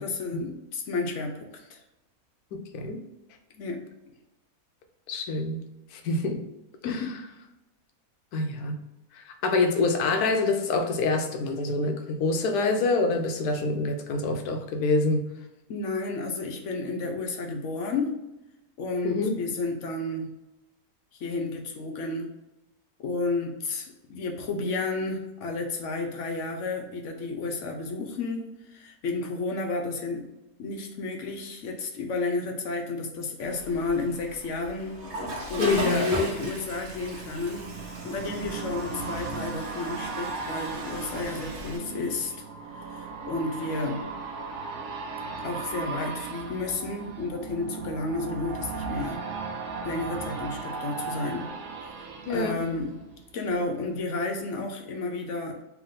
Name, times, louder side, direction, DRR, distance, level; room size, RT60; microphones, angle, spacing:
voice 1, 0.0-1.8 3.6-3.9 6.8-7.2 15.7-18.2 18.8-20.3 21.1-22.4 23.0-30.3 30.6-35.0 35.5-42.3 42.8-44.1 45.4-49.2 49.8-51.5 52.3-53.0 53.3-55.6, left 3 dB, 60° left, 3 dB, 0.9 m, -32 dB
voice 2, 5.1-5.6 5.9-6.4 6.8-7.1 8.3-8.8 9.2-15.3 19.0-19.4 35.6-36.3 52.3-52.6, left 3 dB, 85° left, 5 dB, 1.2 m, -26 dB
Water / Toilet flush, 33.4-41.8, right 1 dB, 50° right, 1.2 m, -37 dB
sound 1, 36.4-53.5 53.9-54.0, right 4 dB, 70° right, 1.1 m, -37 dB
3.5 x 3.0 x 3.7 m, 0.96 s
omnidirectional pair, 1.6 m